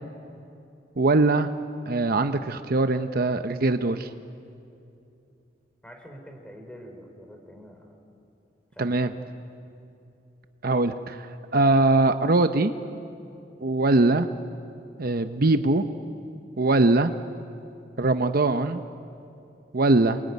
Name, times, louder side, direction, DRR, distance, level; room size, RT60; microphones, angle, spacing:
voice 1, 1.0-1.5 1.9-4.1 8.8-9.1 10.6-11.3 11.5-12.7 13.6-14.3 15.0-15.8 16.6-17.1 18.0-18.8 19.7-20.2, right 2 dB, 55° right, 8 dB, 0.8 m, -21 dB
voice 2, 5.8-8.0 8.7-9.0, equal, 5° left, 3 dB, 4.0 m, -45 dB
27.5 x 23.0 x 9.5 m, 2.7 s
head